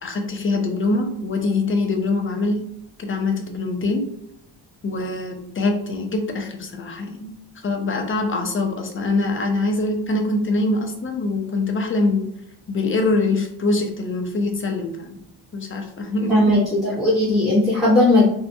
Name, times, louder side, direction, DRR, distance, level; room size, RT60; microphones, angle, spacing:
voice 1, 0.0-2.6 3.0-4.0 4.8-7.3 7.6-12.3 12.7-15.2 15.5-16.4, left 2 dB, 30° left, 4 dB, 0.4 m, -23 dB
voice 2, 16.3-18.2, left 1 dB, ahead, -10 dB, 0.7 m, -17 dB
2.6 x 2.1 x 2.5 m, 0.75 s
wide cardioid pair, 145°, 47 cm